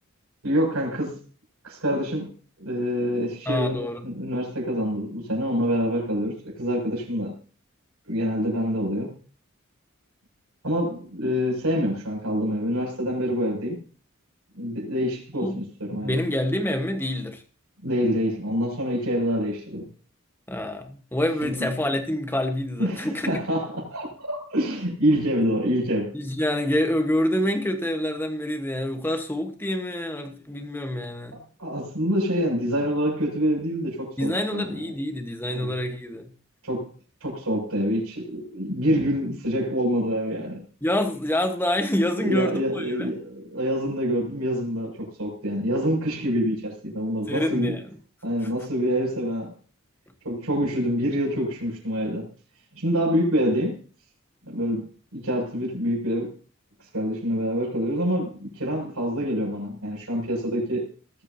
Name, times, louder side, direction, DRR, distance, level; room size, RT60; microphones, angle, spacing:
voice 1, 0.4-1.2 1.6-2.3 2.6-7.3 8.1-9.2 10.6-13.8 14.6-16.1 17.8-19.9 21.4-21.7 22.8-26.1 31.3-34.7 35.5-35.8 36.6-36.9 37.2-40.6 42.2-47.7 48.2-49.5 50.2-52.3 52.7-53.8 54.4-56.3 56.9-60.9, equal, 90° right, 6.8 m, -26 dB
voice 2, 3.5-4.1 15.4-15.6 15.9-17.4 20.5-23.4 26.1-31.4 34.2-36.3 40.8-43.1 47.3-48.0, left 1 dB, 10° left, 1.2 m, -27 dB
21.0 x 8.4 x 2.8 m
head